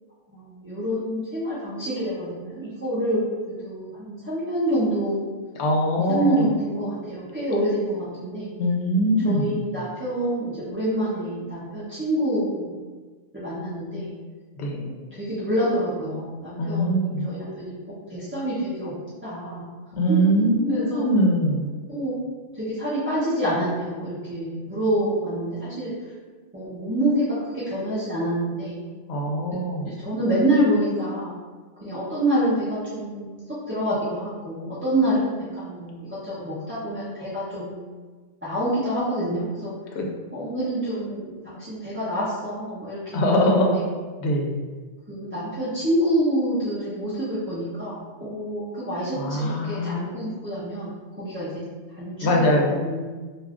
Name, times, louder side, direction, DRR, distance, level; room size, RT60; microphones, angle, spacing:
voice 1, 0.3-3.2 3.5-5.3 6.1-8.5 9.2-12.7 13.3-14.1 14.7-18.9 19.2-19.7 20.1-20.2 20.7-21.1 21.9-22.1 22.5-26.1 26.5-28.8 29.8-31.4 31.8-37.8 38.4-39.7 40.3-43.9 45.1-51.6 51.9-53.1, right 1 dB, 20° right, -12 dB, 0.4 m, -27 dB
voice 2, 5.6-6.4 8.6-9.5 14.6-14.8 16.6-17.3 20.0-21.7 29.1-29.9 40.0-40.1 43.1-43.9 44.2-44.6 49.2-50.1 52.2-52.8, equal, 75° left, 0 dB, 0.8 m, -22 dB
2.4 x 2.3 x 3.4 m, 1.4 s
omnidirectional pair, 1.1 m